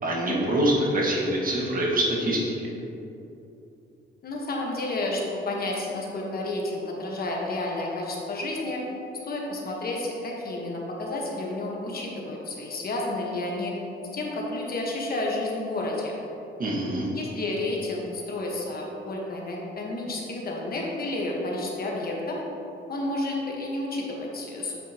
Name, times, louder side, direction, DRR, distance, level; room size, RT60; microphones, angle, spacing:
voice 1, 0.0-2.5 16.6-17.1, right 1 dB, 45° right, -3 dB, 1.6 m, -25 dB
voice 2, 4.2-8.8 9.2-13.7 14.1-16.2 17.1-22.4 22.9-24.8, left 2 dB, 50° left, -2 dB, 1.3 m, -31 dB
8.7 x 5.7 x 3.0 m, 2.9 s
cardioid pair, 90°, 20 cm